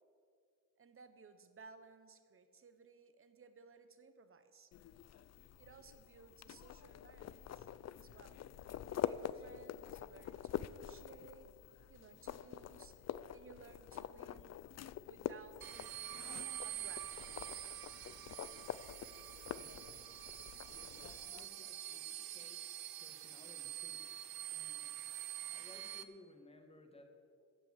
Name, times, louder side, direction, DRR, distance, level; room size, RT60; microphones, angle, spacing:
voice 1, 0.8-4.7 5.5-7.7 7.9-11.5 11.9-14.5 15.0-16.2 16.6-17.9 23.2-23.4, right 5 dB, 35° right, 10 dB, 1.1 m, -60 dB
sound 1, 4.7-21.5, left 10 dB, 45° left, 0.5 m, -46 dB
sound 2, 15.6-26.0, right 13 dB, 75° right, 0.8 m, -46 dB
voice 2, 19.6-20.0 20.7-24.9 25.5-27.0, left 2 dB, 15° left, 4 dB, 1.9 m, -61 dB
14.5 x 7.7 x 7.4 m, 2.3 s
cardioid pair, 100°, 38 cm